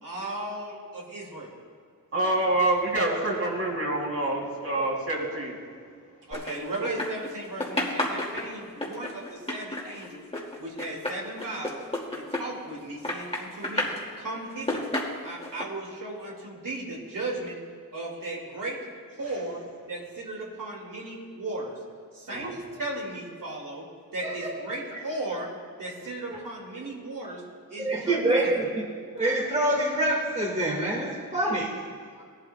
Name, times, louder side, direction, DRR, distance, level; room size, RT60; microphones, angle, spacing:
voice 1, 0.0-1.5 6.3-10.2 10.6-11.8 12.1-13.9 14.2-14.9 15.2-17.6 17.9-18.8 19.1-19.6 19.9-21.8 22.1-23.8 24.1-25.5 25.8-27.4 27.7-28.4, right 2 dB, 65° right, -2 dB, 2.1 m, -36 dB
voice 2, 2.1-5.6 22.3-22.6, right 1 dB, 40° right, -1 dB, 2.9 m, -26 dB
sound 1, 6.3-7.3 7.6-12.8 13.0-14.0 14.5-15.6, left 1 dB, 15° left, 2.2 m, -31 dB
voice 3, 24.2-24.6 24.9-25.0 26.0-26.4 26.8-26.9 27.8-28.9 29.1-32.2, right 1 dB, 20° right, -2 dB, 1.8 m, -27 dB
17.0 x 12.0 x 2.2 m, 2.1 s
cardioid pair, 60°, 35 cm